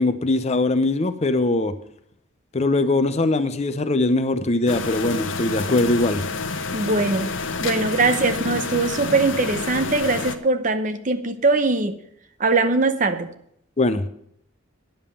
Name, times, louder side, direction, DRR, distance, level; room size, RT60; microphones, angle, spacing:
voice 1, 0.0-1.7 2.5-6.2 13.8-14.1, left 2 dB, 35° left, 0.6 m, -21 dB
sound 1, 4.7-10.4, left 4 dB, 70° left, 0.9 m, -29 dB
voice 2, 6.7-7.3 7.6-12.0 12.4-13.3, right 3 dB, 40° right, 0.8 m, -21 dB
10.5 x 7.3 x 6.9 m
head